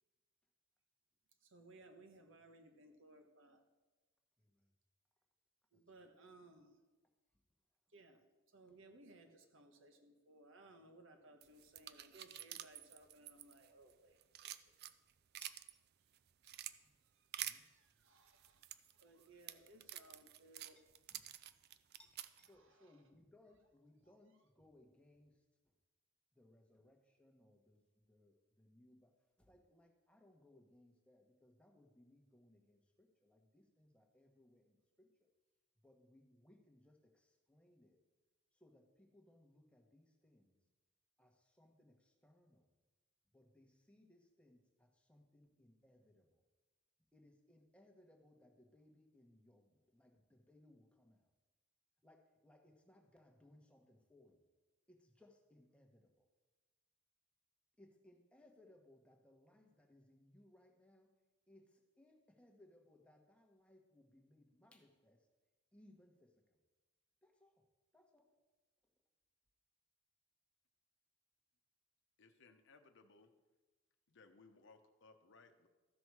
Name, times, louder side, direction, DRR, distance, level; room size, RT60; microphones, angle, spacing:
voice 1, 1.4-3.6 5.7-6.8 7.9-8.2 8.5-14.7 16.4-16.6 17.1-18.6 18.9-20.8 22.5-22.9, right 2 dB, 65° right, 6 dB, 1.2 m, -62 dB
voice 2, 4.4-4.7 5.7-5.8 15.4-15.6 16.6-16.9 17.4-17.7 19.2-19.3 21.1-21.3 22.0-25.7 26.3-29.1 29.4-35.3 35.8-38.0 38.5-40.6 41.2-42.7 43.3-46.4 47.1-51.3 52.0-54.5 54.9-56.2 57.8-61.1 61.5-65.3 65.7-66.6 67.2-67.6 67.9-68.3, left 1 dB, 5° left, 2 dB, 1.2 m, -68 dB
sound 1, 11.4-13.9 14.2-15.7 16.1-16.7 17.3-17.6 18.3-22.5, right 12 dB, 50° right, 0.4 m, -48 dB
voice 3, 72.2-73.3 74.1-75.7, left 3 dB, 60° left, 7 dB, 0.9 m, -64 dB
14.0 x 6.2 x 4.8 m, 1.2 s
head